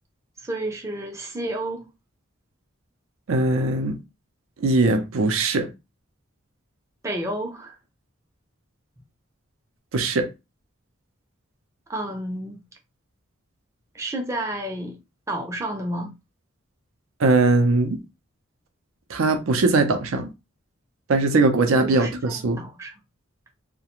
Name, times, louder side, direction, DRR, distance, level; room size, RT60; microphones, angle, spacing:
voice 1, 0.4-1.8 7.0-7.8 11.9-12.6 13.9-15.0 15.3-16.1 21.8-22.9, right 1 dB, 15° right, 0.4 m, -31 dB
voice 2, 3.3-4.0 4.6-5.7 9.9-10.3 17.2-18.0 19.1-20.3 21.1-22.6, right 3 dB, 80° right, 0.5 m, -20 dB
2.4 x 2.1 x 2.9 m
head